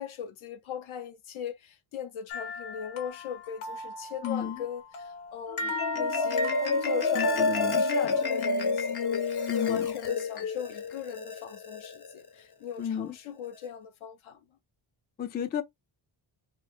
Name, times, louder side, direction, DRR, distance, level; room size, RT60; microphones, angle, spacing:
voice 1, 0.0-14.4, left 8 dB, 75° left, 0.8 m, -39 dB
sound 1, 2.3-8.6, left 3 dB, 90° left, 1.3 m, -38 dB
voice 2, 4.2-4.6 7.2-7.9 8.2-8.3 9.5-9.9 12.8-13.2 15.2-15.6, left 8 dB, 25° left, 0.3 m, -32 dB
Marimba xylophone, 5.5-12.1, left 3 dB, 50° left, 1.0 m, -29 dB
2.7 x 2.2 x 3.4 m
cardioid pair, 95°, 50 cm